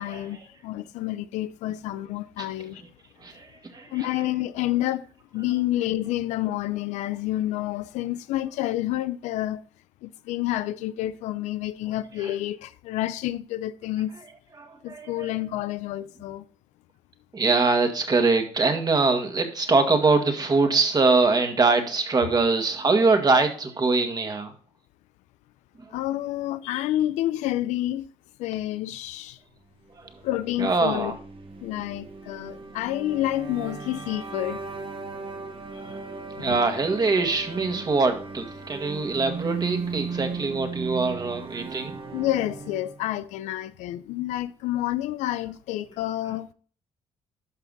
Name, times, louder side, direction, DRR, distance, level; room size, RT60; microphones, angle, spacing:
voice 1, 0.0-2.8 3.9-5.1 5.3-9.6 10.0-14.1 14.8-16.4 25.9-28.0 28.4-29.4 30.2-31.2 31.6-34.6 36.4-36.6 42.1-46.5, left 14 dB, 90° left, 0.5 m, -29 dB
voice 2, 3.2-3.9 14.6-15.3 17.3-24.5 30.0-30.1 30.6-31.1 35.8-36.0 36.4-41.9, right 3 dB, 35° right, 1.9 m, -23 dB
sound 1, 30.1-43.0, right 4 dB, 50° right, 1.5 m, -36 dB
12.0 x 5.7 x 4.0 m
cardioid pair, 80°, 12 cm